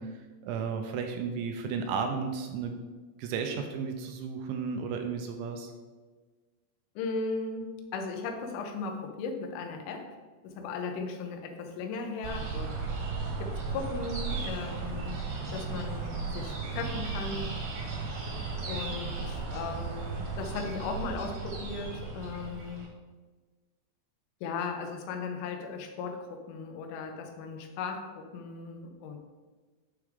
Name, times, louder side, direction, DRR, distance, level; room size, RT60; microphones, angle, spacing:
voice 1, 0.0-2.7 3.2-5.7, right 5 dB, 85° right, 5 dB, 2.8 m, -33 dB
voice 2, 7.0-10.1 10.4-12.8 13.4-15.2 15.5-17.5 18.7-22.8 24.4-29.2, left 4 dB, 85° left, 3 dB, 3.4 m, -37 dB
sound 1, 12.2-22.9, right 4 dB, 65° right, 2.7 m, -35 dB
10.5 x 4.7 x 3.6 m, 1.3 s
omnidirectional pair, 5.6 m